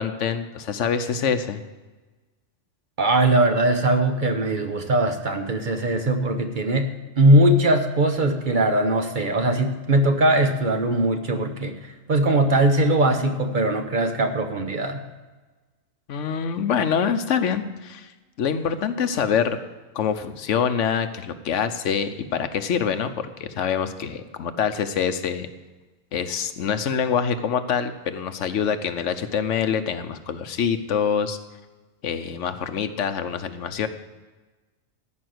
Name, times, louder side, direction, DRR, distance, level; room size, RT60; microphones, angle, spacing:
voice 1, 0.0-1.6 16.1-18.1 18.4-19.6 19.9-25.5 26.1-31.4 32.0-33.9, left 7 dB, 85° left, 10 dB, 1.1 m, -25 dB
voice 2, 3.0-11.8 12.1-15.0, right 1 dB, 45° right, 6 dB, 1.1 m, -20 dB
14.0 x 5.8 x 7.8 m, 1.2 s
omnidirectional pair, 1.2 m